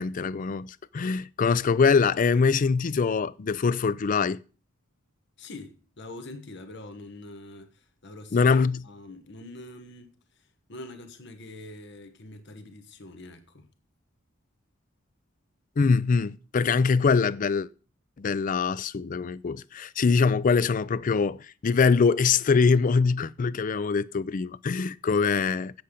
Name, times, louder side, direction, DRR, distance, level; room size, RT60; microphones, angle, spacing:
voice 1, 0.0-4.4 8.3-8.8 15.8-17.7 18.2-25.7, left 5 dB, 40° left, 0.4 m, -23 dB
voice 2, 5.4-8.5 8.8-13.7 25.3-25.6, left 2 dB, 60° left, 1.3 m, -44 dB
8.3 x 7.9 x 5.1 m
head